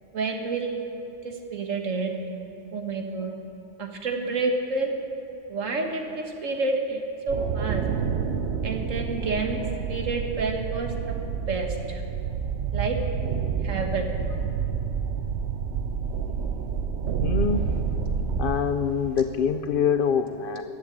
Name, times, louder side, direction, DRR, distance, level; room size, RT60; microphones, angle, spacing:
voice 1, 0.1-0.8 1.2-2.1 2.7-3.3 3.8-4.9 5.5-7.8 8.6-9.6 9.9-11.2 11.5-12.0 12.7-13.0 13.6-14.1, right 3 dB, 90° right, 3 dB, 1.8 m, -29 dB
sound 1, 7.3-18.5, right 6 dB, 65° right, 1.0 m, -28 dB
voice 2, 17.2-17.8 18.4-20.6, left 7 dB, 60° left, 9 dB, 0.6 m, -25 dB
14.5 x 8.8 x 8.5 m, 2.9 s
omnidirectional pair, 1.3 m